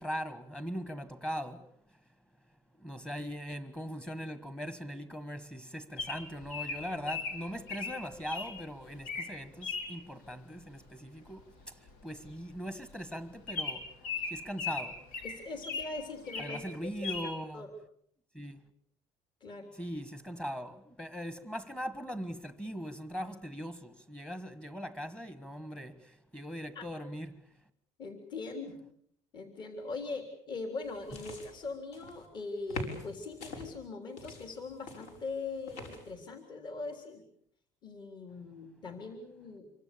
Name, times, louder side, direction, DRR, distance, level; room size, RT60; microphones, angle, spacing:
voice 1, 0.0-1.6 2.8-11.4 12.0-13.9 14.3-15.0 16.4-17.7 18.4-18.6 19.8-26.0 26.3-27.3, equal, 5° left, 1.6 m, -40 dB
Bird vocalization bird call bird song, 6.0-8.5 9.0-9.3 9.6-9.9 11.4-11.6 11.9-12.0 12.2-12.4 12.9-13.0 13.5-15.9 16.3-16.6 17.0-17.3, left 4 dB, 85° left, 6.0 m, -37 dB
voice 2, 15.2-16.6 17.0-17.7 19.4-19.7 26.8-26.9 28.0-28.8 29.3-37.2 37.8-39.7, left 3 dB, 35° left, 3.7 m, -41 dB
sound 1, 30.8-32.3 32.7-33.7 34.2-36.1, left 2 dB, 65° left, 5.7 m, -44 dB
27.0 x 24.0 x 7.0 m
cardioid pair, 170°, 13 cm